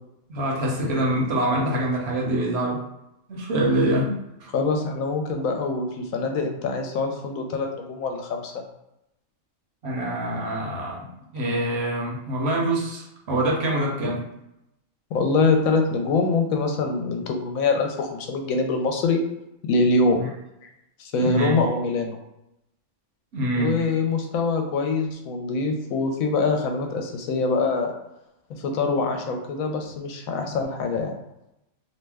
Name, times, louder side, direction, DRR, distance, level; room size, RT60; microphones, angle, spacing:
voice 1, 0.3-2.8 3.3-4.5 9.8-14.3 20.2-20.3 21.2-21.6 23.3-23.8, right 1 dB, 55° right, -2 dB, 0.8 m, -25 dB
voice 2, 4.5-8.6 15.1-19.2 19.6-20.2 20.6-20.7 21.0-22.2 23.6-27.9 28.6-31.1, left 3 dB, 75° left, 4 dB, 0.9 m, -24 dB
2.7 x 2.1 x 3.3 m, 0.85 s
omnidirectional pair, 1.5 m